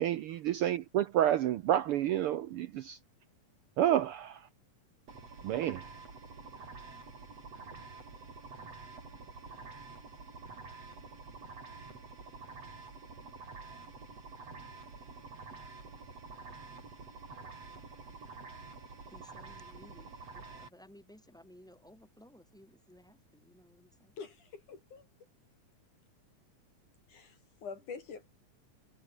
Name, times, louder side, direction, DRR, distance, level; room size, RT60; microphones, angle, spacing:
voice 1, 0.0-3.0 3.8-4.5 5.4-5.9, right 11 dB, 90° right, 1.2 m, -29 dB
sound 1, 5.1-20.7, right 4 dB, 55° right, 6.5 m, -48 dB
voice 2, 19.1-24.2, equal, ahead, 6.0 m, -58 dB
voice 3, 24.2-25.1 27.1-28.3, left 5 dB, 75° left, 5.7 m, -46 dB
omnidirectional pair, 3.5 m